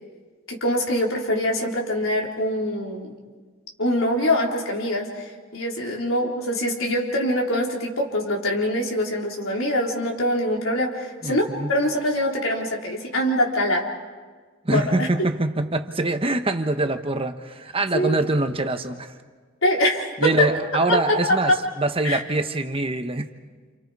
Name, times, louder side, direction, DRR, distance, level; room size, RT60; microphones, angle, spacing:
voice 1, 0.5-3.1 3.8-5.2 5.5-13.8 14.7-15.1 17.9-18.2 19.6-20.5 20.9-21.2 21.5-21.6 22.0-22.2, left 1 dB, 85° left, -1 dB, 3.8 m, -23 dB
voice 2, 11.2-11.7 14.6-19.1 20.2-23.3, right 2 dB, 30° right, 7 dB, 1.1 m, -24 dB
29.5 x 29.0 x 4.8 m, 1.5 s
head